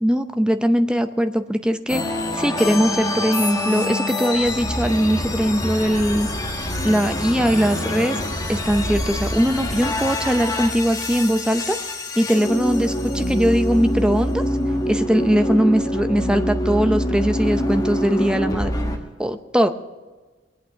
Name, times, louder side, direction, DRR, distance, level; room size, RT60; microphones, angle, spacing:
voice 1, 0.0-2.0 2.3-6.3 6.8-8.2 8.5-11.8 12.2-14.4 14.9-18.7 19.2-19.7, equal, 5° right, 8 dB, 0.6 m, -20 dB
sound 1, 1.9-19.0, left 1 dB, 20° left, 1.4 m, -25 dB
21.0 x 8.7 x 5.8 m, 1.3 s
head